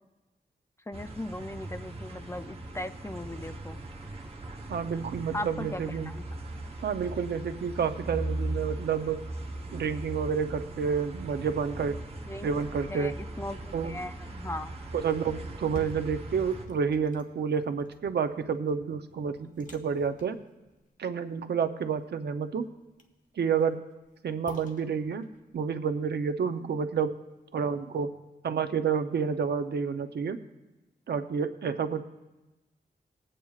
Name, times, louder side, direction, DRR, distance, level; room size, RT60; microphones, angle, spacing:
voice 1, 0.9-3.8 5.3-6.2 12.3-12.5 12.9-14.8, left 1 dB, 15° left, 10 dB, 0.3 m, -38 dB
sound 1, 0.9-16.7, right 2 dB, 35° right, 1.0 m, -39 dB
voice 2, 4.7-6.1 6.8-9.2 9.7-12.0 12.4-13.1 13.7-13.9 14.9-20.4 21.0-22.7 23.4-23.8 24.2-25.3 25.5-27.1 27.5-28.1 28.4-30.4 31.1-32.0, right 6 dB, 85° right, 9 dB, 0.6 m, -29 dB
sound 2, 15.5-27.5 27.9-28.0, left 2 dB, 50° left, 1.0 m, -50 dB
20.5 x 8.9 x 2.4 m, 1.0 s
wide cardioid pair, 140°, 17 cm